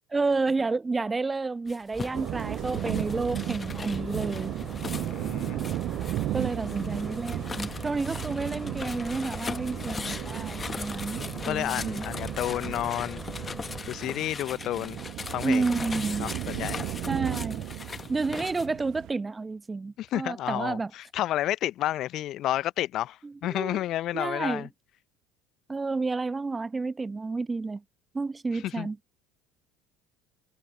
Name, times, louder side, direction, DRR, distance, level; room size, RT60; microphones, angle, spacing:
voice 1, 0.1-4.5 6.3-11.2 11.5-12.1 15.4-16.4 17.1-17.7 18.1-20.9 23.2-23.8 24.1-24.7 25.7-27.8 28.1-29.0, right 3 dB, 20° right, 1.2 m, -30 dB
sound 1, 1.7-18.7, left 5 dB, 25° left, 1.7 m, -40 dB
sound 2, 1.9-13.8, left 1 dB, 5° left, 4.5 m, -42 dB
sound 3, 2.1-19.1, right 16 dB, 50° right, 1.1 m, -35 dB
voice 2, 4.9-5.6 11.1-13.2 13.9-15.0 15.3-15.6 16.2-16.9 20.0-24.7 28.5-28.9, left 13 dB, 50° left, 1.1 m, -31 dB
figure-of-eight pair, 60°, 0 cm